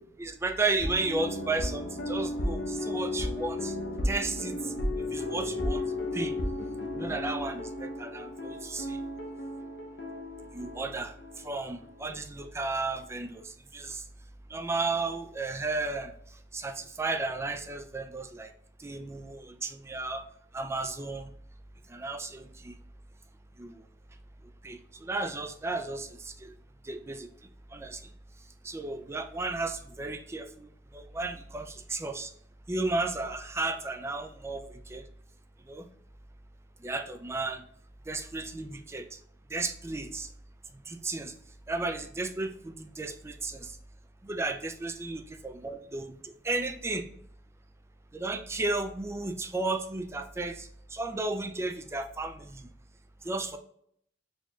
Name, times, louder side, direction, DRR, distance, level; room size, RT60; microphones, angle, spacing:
voice 1, 0.0-3.7 4.0-4.6 5.0-5.8 6.1-6.3 6.9-9.0 10.5-14.0 14.5-16.1 16.5-18.5 18.8-20.2 20.5-21.3 21.9-22.7 23.6-23.8 24.6-26.5 26.8-27.3 27.7-28.0 28.6-30.7 30.9-32.3 32.7-35.0 35.7-35.9 36.8-37.6 38.1-39.2 39.5-40.3 40.9-41.3 41.7-43.8 44.2-47.1 48.1-52.7 53.2-53.6, right 3 dB, 15° right, 7 dB, 0.3 m, -34 dB
sound 1, 0.8-12.2 12.5-12.6, left 1 dB, 60° left, 0.7 m, -34 dB
4.2 x 3.1 x 2.3 m, 0.68 s
head